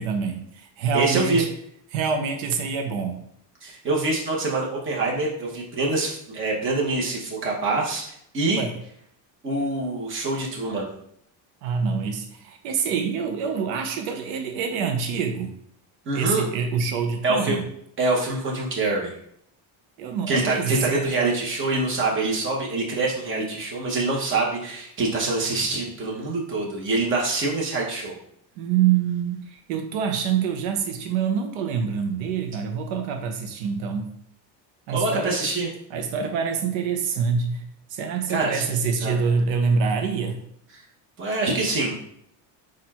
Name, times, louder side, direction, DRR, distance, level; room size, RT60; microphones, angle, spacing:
voice 1, 0.0-1.5 1.9-3.2 8.6-8.7 11.6-15.6 16.1-17.7 20.0-21.1 28.6-34.1 34.9-35.3 35.9-40.4, right 6 dB, 80° right, 5 dB, 0.7 m, -26 dB
voice 2, 0.9-1.4 3.6-8.6 9.4-10.9 16.0-16.4 17.2-17.6 18.0-19.2 20.3-28.2 34.9-35.7 38.3-38.7 39.0-39.2 41.2-42.0, right 3 dB, 25° right, -3 dB, 1.1 m, -25 dB
4.3 x 2.5 x 4.2 m, 0.71 s
cardioid pair, 150°, 46 cm